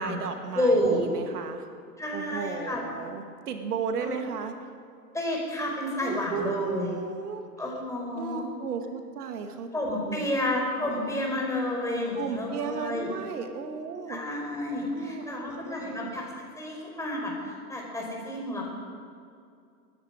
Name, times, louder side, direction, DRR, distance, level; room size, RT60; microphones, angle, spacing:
voice 1, 0.0-1.7 2.1-4.5 6.0-7.4 8.1-9.7 10.1-10.3 12.2-14.2 14.9-16.1, right 5 dB, 70° right, 6 dB, 2.0 m, -34 dB
voice 2, 0.5-1.0 2.0-2.8 4.0-4.2 5.1-6.9 7.6-8.5 9.7-13.1 14.1-18.6, left 1 dB, 5° left, -2 dB, 4.9 m, -30 dB
20.0 x 14.0 x 5.1 m, 2.4 s
hypercardioid pair, 105°, 47 cm